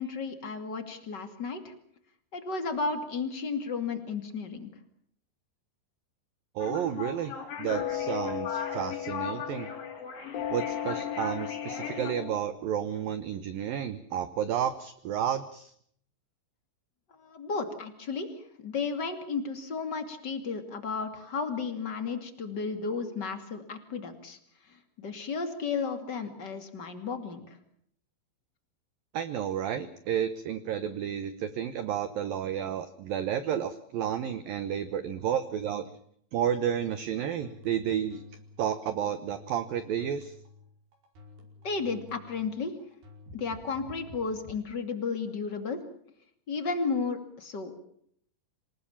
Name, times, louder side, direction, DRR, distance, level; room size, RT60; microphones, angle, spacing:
voice 1, 0.0-1.7 2.3-4.7 17.2-18.3 18.6-24.4 25.0-27.4 41.6-42.8 43.3-45.8 46.5-47.8, left 4 dB, 35° left, 8 dB, 1.9 m, -33 dB
sound 1, 6.6-12.1, left 6 dB, 50° left, 4.7 m, -39 dB
voice 2, 6.6-7.3 7.6-9.7 10.5-15.7 29.1-35.9 36.3-38.2 38.6-40.3, right 9 dB, 70° right, 12 dB, 2.2 m, -31 dB
sound 2, 7.7-10.0 10.3-12.4, left 10 dB, 85° left, 4.8 m, -35 dB
sound 3, 36.4-44.6, left 2 dB, 55° right, 7.0 m, -52 dB
27.0 x 19.0 x 7.3 m, 0.66 s
omnidirectional pair, 5.5 m